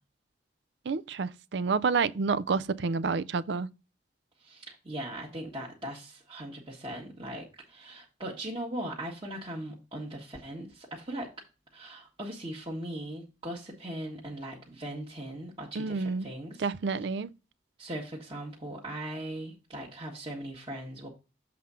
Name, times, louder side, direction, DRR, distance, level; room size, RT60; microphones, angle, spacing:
voice 1, 0.9-3.7 15.8-16.3 16.6-17.3, right 4 dB, 65° right, 0.5 m, -29 dB
voice 2, 4.4-11.3 11.7-16.7 17.8-21.1, right 1 dB, 25° right, 1.5 m, -39 dB
7.6 x 3.6 x 5.6 m
head